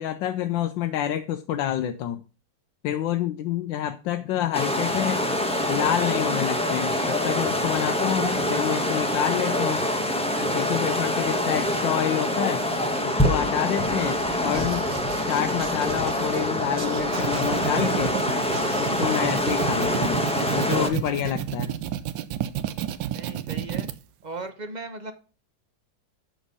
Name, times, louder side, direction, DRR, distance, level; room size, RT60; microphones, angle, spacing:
voice 1, 0.0-2.2 2.8-5.2 5.7-9.8 10.4-12.6 13.0-14.8 15.3-18.2 18.8-20.2 20.5-21.7, left 11 dB, 85° left, 8 dB, 1.4 m, -28 dB
sound 1, 4.5-20.9, left 1 dB, 5° left, 0.7 m, -25 dB
sound 2, 14.5-16.4 16.8-18.0 18.5-19.3, right 6 dB, 60° right, 1.6 m, -40 dB
sound 3, 16.9-23.9, right 11 dB, 80° right, 1.4 m, -30 dB
voice 2, 23.1-23.9 24.2-25.1, right 3 dB, 40° right, 8 dB, 0.6 m, -37 dB
7.8 x 6.1 x 5.3 m, 0.34 s
omnidirectional pair, 2.0 m